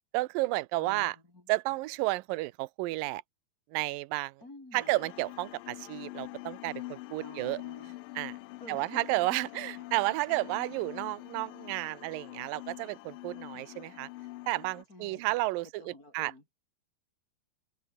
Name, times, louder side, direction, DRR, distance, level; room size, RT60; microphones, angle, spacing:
voice 1, 0.1-1.2 1.5-3.2 3.7-4.4 4.7-7.6 8.2-8.4 8.7-14.1 14.5-16.3, right 20 dB, 75° right, 2.4 m, -32 dB
voice 2, 0.8-1.4 4.4-4.9 7.2-8.0 8.6-9.0 9.5-9.9 10.7-10.9 13.5-13.7 14.9-15.4 15.8-16.4, left 2 dB, 25° left, 5.8 m, -50 dB
sound 1, 4.8-14.8, left 19 dB, 80° left, 2.2 m, -45 dB
omnidirectional pair, 4.2 m